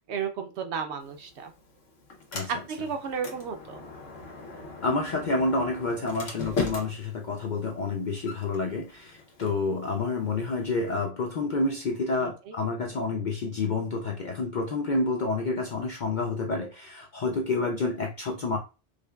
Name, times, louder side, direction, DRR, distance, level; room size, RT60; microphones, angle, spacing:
voice 1, 0.1-1.5 2.5-3.8 12.2-12.6, right 6 dB, 70° right, 6 dB, 0.8 m, -33 dB
Sliding door, 1.0-11.0, left 4 dB, 85° left, 1.2 m, -40 dB
voice 2, 4.8-18.6, left 3 dB, 65° left, 2 dB, 0.5 m, -29 dB
5.0 x 2.2 x 2.3 m, 0.30 s
omnidirectional pair, 1.3 m